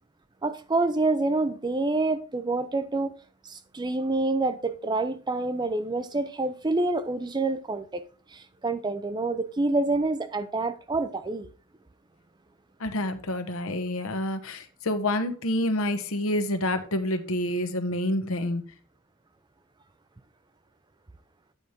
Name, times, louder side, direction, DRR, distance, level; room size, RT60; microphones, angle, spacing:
voice 1, 0.4-3.1 3.4-8.0 8.3-11.5, right 2 dB, 20° right, 0.5 m, -27 dB
voice 2, 12.8-18.6, left 1 dB, 70° left, 1.0 m, -28 dB
9.0 x 5.0 x 4.3 m
head